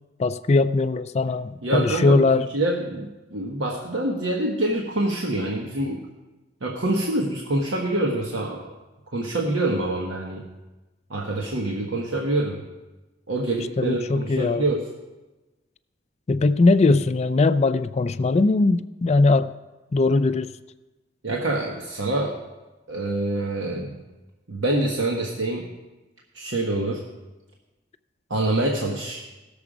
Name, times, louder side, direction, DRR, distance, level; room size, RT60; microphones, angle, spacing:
voice 1, 0.2-2.5 13.8-14.6 16.3-19.5 19.9-20.5, left 3 dB, 35° left, 12 dB, 0.4 m, -20 dB
voice 2, 1.6-6.0 6.6-8.7 9.1-10.5 11.1-12.6 13.3-14.8 21.2-22.4 22.9-23.9 24.5-25.7 26.3-27.0 28.3-29.2, right 2 dB, 80° right, 0 dB, 1.3 m, -26 dB
17.0 x 7.0 x 5.0 m, 1.1 s
head